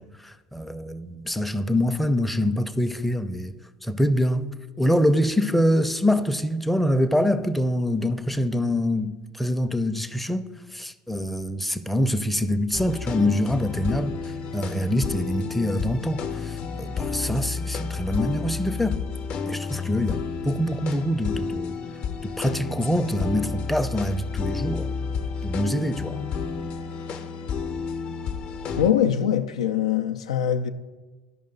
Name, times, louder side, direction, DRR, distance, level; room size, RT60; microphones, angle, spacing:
voice 1, 0.0-3.5 3.8-4.5 4.8-19.0 19.5-21.8 22.2-24.9 25.4-26.2, equal, 5° left, 0.5 m, -25 dB
sound 1, 12.7-28.9, left 5 dB, 50° left, 0.7 m, -31 dB
voice 2, 28.8-30.7, left 9 dB, 80° left, 0.3 m, -23 dB
11.5 x 5.2 x 3.9 m
hypercardioid pair, 70°, 3 cm